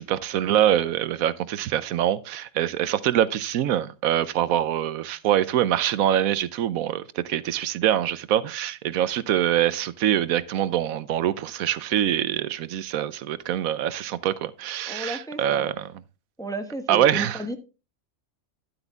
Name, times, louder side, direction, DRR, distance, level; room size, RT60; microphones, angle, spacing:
voice 1, 0.0-15.9 16.9-17.4, right 11 dB, 80° right, 1.1 m, -24 dB
voice 2, 14.9-15.7 16.4-17.6, right 1 dB, 5° left, 1.0 m, -33 dB
11.5 x 7.9 x 3.5 m
omnidirectional pair, 1.4 m